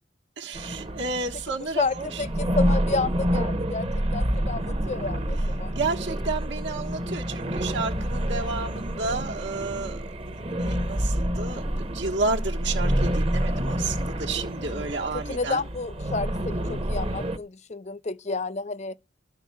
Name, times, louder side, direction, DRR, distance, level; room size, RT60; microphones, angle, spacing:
voice 1, 0.4-2.2 5.7-15.6, right 3 dB, 65° right, 1.3 m, -31 dB
sound 1, 0.5-17.4, equal, 30° right, 0.9 m, -28 dB
voice 2, 1.8-5.7 14.6-15.0 15.3-19.0, left 3 dB, 35° left, 0.7 m, -31 dB
12.5 x 5.8 x 9.5 m
head